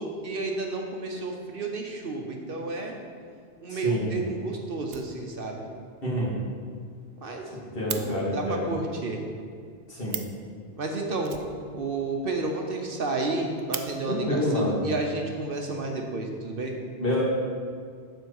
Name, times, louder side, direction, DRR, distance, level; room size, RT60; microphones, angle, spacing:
voice 1, 0.0-2.9 3.6-5.6 7.2-7.4 7.9-9.2 10.8-11.4 11.7-16.7, right 3 dB, 55° right, 2 dB, 0.9 m, -31 dB
voice 2, 3.7-4.1 6.0-6.3 7.5-8.7 9.9-10.1 14.0-14.8 17.0-17.2, left 1 dB, 55° left, -6 dB, 2.1 m, -28 dB
Fire, 4.4-4.5 4.8-5.7 6.0-6.1 6.4-6.5 6.7-6.8 7.1-8.0 9.8-9.9 10.1-10.5 11.2-12.2 12.5-12.6 12.8-12.9 13.3-13.9 14.9-15.0 15.6-16.2, right 9 dB, 85° right, 0.9 m, -38 dB
7.0 x 4.4 x 6.4 m, 2.1 s
omnidirectional pair, 1.1 m